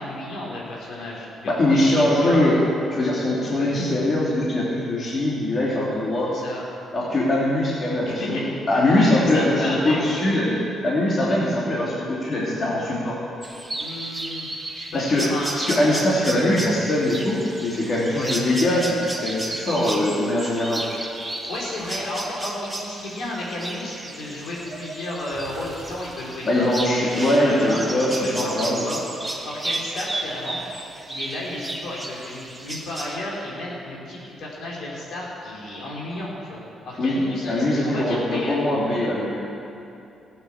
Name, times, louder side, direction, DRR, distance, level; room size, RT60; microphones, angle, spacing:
voice 1, 0.0-2.6 3.5-3.9 6.3-6.7 8.1-8.5 9.0-10.1 13.7-16.4 18.1-18.4 21.5-26.7 27.0-27.9 28.2-29.0 29.3-30.6 31.1-38.8, left 1 dB, 70° left, -4 dB, 4.0 m, -33 dB
voice 2, 1.5-2.6 2.9-6.3 6.9-13.2 14.9-15.2 15.6-19.0 19.2-20.8 26.4-28.8 37.0-37.2 37.5-39.4, left 1 dB, 40° left, -6 dB, 3.0 m, -22 dB
sound 1, 13.4-33.2, right 2 dB, 10° right, 1.6 m, -33 dB
15.0 x 8.9 x 7.3 m, 2.7 s
cardioid pair, 90°, 0 cm